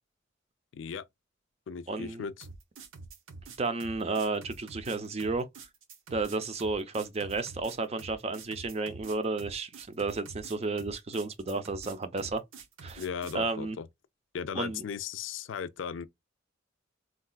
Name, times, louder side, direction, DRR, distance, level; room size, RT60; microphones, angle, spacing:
voice 1, 0.7-1.0 1.7-2.5 13.0-13.9 14.3-16.1, left 6 dB, 65° left, 0.4 m, -37 dB
voice 2, 1.9-2.2 3.6-5.5 6.1-12.4 12.8-13.0 13.3-13.8 14.6-14.8, right 3 dB, 30° right, 0.5 m, -32 dB
sound 1, 2.4-13.4, right 4 dB, 80° right, 0.7 m, -47 dB
3.9 x 2.3 x 2.2 m
head